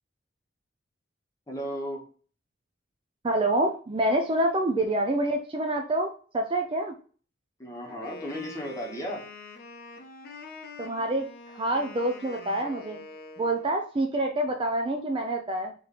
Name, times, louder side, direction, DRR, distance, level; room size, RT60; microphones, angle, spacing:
voice 1, 1.5-2.0 7.6-9.2, equal, 15° left, -1 dB, 1.0 m, -35 dB
voice 2, 3.2-6.9 10.8-13.0 13.4-15.7, right 1 dB, 25° right, 3 dB, 0.4 m, -27 dB
Wind instrument woodwind instrument, 7.8-13.7, left 3 dB, 50° left, 0.7 m, -45 dB
3.1 x 3.1 x 4.0 m, 0.41 s
head